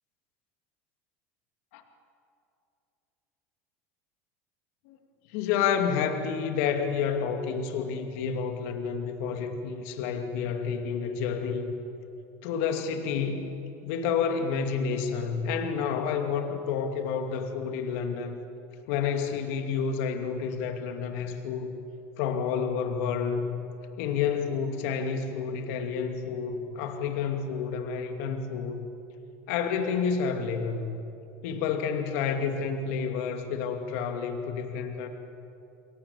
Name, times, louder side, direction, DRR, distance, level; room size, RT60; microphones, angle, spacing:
voice 1, 5.3-11.7 12.4-13.5 13.8-18.4 18.9-21.7 22.2-23.7 24.0-28.9 29.5-31.0 31.4-35.1, left 6 dB, 70° left, 5 dB, 2.6 m, -29 dB
29.0 x 22.5 x 8.7 m, 2.8 s
supercardioid pair, 125°, 7 cm